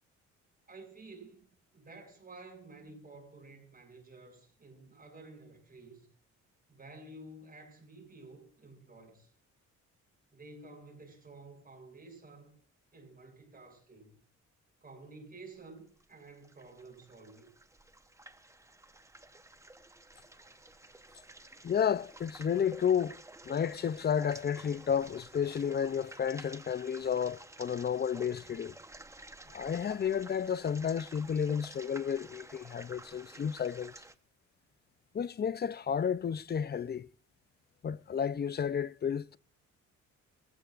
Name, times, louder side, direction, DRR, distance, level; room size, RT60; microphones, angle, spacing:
voice 1, 0.7-6.1 6.7-9.3 10.3-12.6 12.9-14.2 14.8-17.5, right 2 dB, 30° right, 7.1 m, -52 dB
sound 1, 16.0-34.2, right 2 dB, 10° right, 1.0 m, -52 dB
voice 2, 21.6-28.8 29.5-33.9 35.1-37.1 37.8-39.4, left 8 dB, 35° left, 0.6 m, -32 dB
25.0 x 15.0 x 2.5 m
cardioid pair, 90°, 30 cm